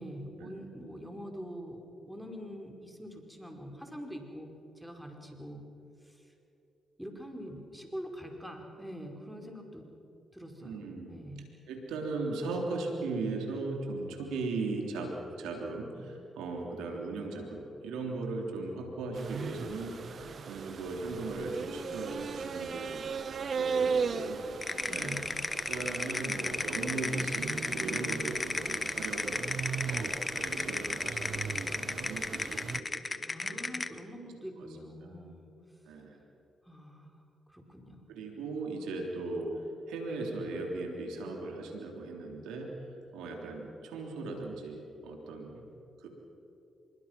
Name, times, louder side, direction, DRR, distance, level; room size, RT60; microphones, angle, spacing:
voice 1, 0.0-4.5 4.8-5.6 6.0-6.2 7.0-9.9 10.3-10.8 11.1-11.5 24.8-25.4 33.2-35.5 36.6-37.1 37.5-38.0, equal, 5° right, 2 dB, 4.9 m, -44 dB
voice 2, 10.6-11.2 11.7-23.1 23.5-24.5 24.9-25.2 25.6-34.2 34.6-34.7 35.0-35.1 35.8-36.2 38.1-45.6 46.0-46.1, right 3 dB, 90° right, 2 dB, 3.4 m, -38 dB
sound 1, 19.1-32.8, right 5 dB, 60° right, 0.9 m, -37 dB
sound 2, 24.6-34.0, left 3 dB, 30° left, 1.0 m, -34 dB
25.5 x 23.0 x 6.0 m, 2.8 s
supercardioid pair, 55°, 0 cm